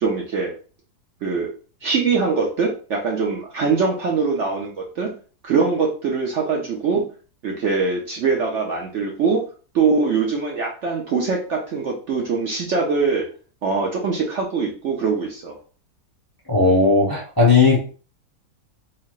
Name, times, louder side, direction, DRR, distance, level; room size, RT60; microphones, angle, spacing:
voice 1, 0.0-0.5 1.2-1.5 1.8-5.1 5.4-7.1 7.4-9.4 9.7-13.3 13.6-15.6, right 4 dB, 60° right, 0 dB, 0.8 m, -22 dB
voice 2, 16.5-17.8, left 4 dB, 20° left, -4 dB, 0.6 m, -16 dB
3.3 x 3.3 x 2.4 m, 0.37 s
omnidirectional pair, 1.7 m